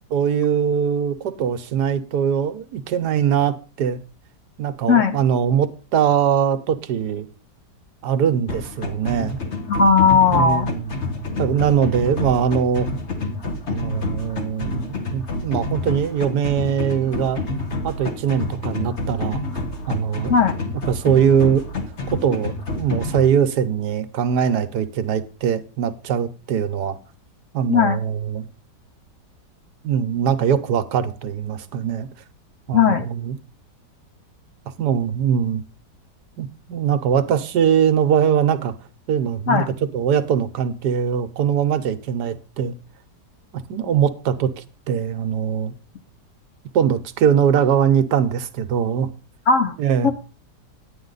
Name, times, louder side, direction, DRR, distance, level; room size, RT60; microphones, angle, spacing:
voice 1, 0.1-4.0 4.6-7.2 8.0-9.4 10.3-10.9 11.4-12.9 13.7-17.4 17.8-19.4 19.9-20.3 20.9-21.6 22.1-27.0 27.5-28.5 29.8-32.1 32.7-33.4 34.8-35.6 36.4-38.7 39.1-39.6 39.9-42.7 43.5-45.7 46.7-49.1 49.8-50.1, right 8 dB, 75° right, 1.3 m, -21 dB
sound 1, 8.5-23.3, left 2 dB, 45° left, 1.4 m, -28 dB
voice 2, 9.7-10.7 20.3-20.5 27.7-28.0 32.7-33.1 39.5-39.7 49.5-49.8 50.0-50.1, left 5 dB, 60° left, 0.9 m, -16 dB
10.5 x 8.9 x 3.9 m
omnidirectional pair, 1.8 m